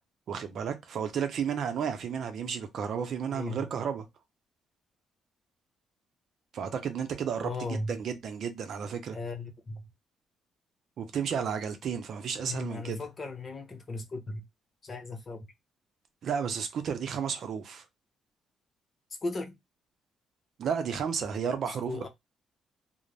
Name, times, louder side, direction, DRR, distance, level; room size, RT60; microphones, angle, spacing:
voice 1, 0.3-4.1 6.5-9.2 11.0-13.0 16.2-17.8 20.6-22.1, right 7 dB, 65° right, 0.6 m, -32 dB
voice 2, 3.3-3.7 7.4-8.0 9.1-9.9 12.4-14.4 14.8-15.5 19.2-19.6 21.7-22.1, left 3 dB, 40° left, 0.7 m, -37 dB
2.5 x 2.1 x 3.1 m
cardioid pair, 90°, 0 cm